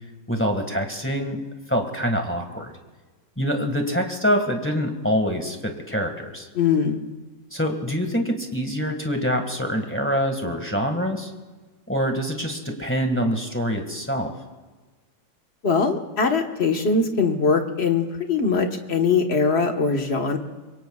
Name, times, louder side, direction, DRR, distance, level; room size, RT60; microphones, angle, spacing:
voice 1, 0.3-1.4 1.7-2.7 3.4-6.5 7.5-11.3 11.9-14.3, equal, 5° left, 3 dB, 1.6 m, -25 dB
voice 2, 6.5-7.0 15.6-20.4, left 5 dB, 35° left, 4 dB, 1.5 m, -21 dB
26.5 x 23.0 x 2.4 m, 1.3 s
omnidirectional pair, 2.1 m